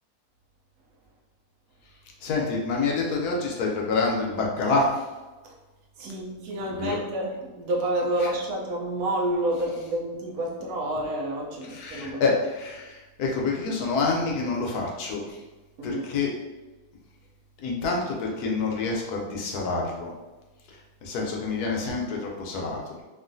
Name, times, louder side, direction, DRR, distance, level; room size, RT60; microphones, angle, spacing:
voice 1, 2.2-5.0 6.7-7.0 11.7-15.4 15.8-16.3 17.6-20.1 21.0-22.9, left 3 dB, 75° left, -1 dB, 1.1 m, -27 dB
voice 2, 6.0-12.4 15.8-16.0, right 1 dB, 70° right, -1 dB, 1.0 m, -29 dB
3.0 x 2.4 x 2.5 m, 1.2 s
omnidirectional pair, 1.7 m